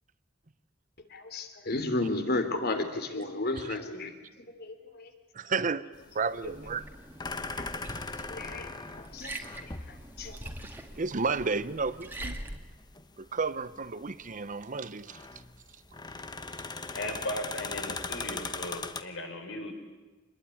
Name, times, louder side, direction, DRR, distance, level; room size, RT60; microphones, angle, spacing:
voice 1, 1.1-4.1 4.6-5.1 8.3-8.7 9.1-9.7 10.2-10.3, left 2 dB, 55° left, 8 dB, 3.2 m, -32 dB
voice 2, 5.3-5.9 6.1-6.9 11.0-12.4 13.2-15.2, right 4 dB, 40° right, 14 dB, 0.8 m, -32 dB
sound 1, 5.9-19.0, left 3 dB, 20° left, 1.1 m, -40 dB
Liquid, 6.4-12.6, right 1 dB, 10° right, 2.1 m, -43 dB
voice 3, 16.9-19.7, left 1 dB, 70° left, 4 dB, 5.2 m, -37 dB
27.0 x 20.5 x 9.9 m, 1.2 s
head